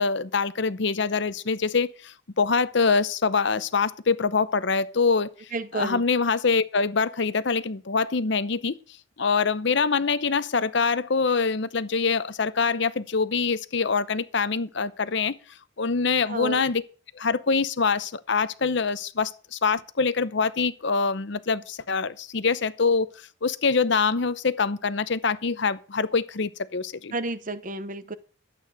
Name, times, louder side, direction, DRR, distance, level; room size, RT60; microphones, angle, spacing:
voice 1, 0.0-5.3 5.7-8.8 9.2-15.3 15.8-16.8 17.1-23.1 23.4-27.1, left 4 dB, 55° left, 0.7 m, -24 dB
voice 2, 5.5-6.0 16.3-16.6 27.1-28.1, right 3 dB, 40° right, 0.8 m, -31 dB
12.0 x 8.6 x 6.4 m
head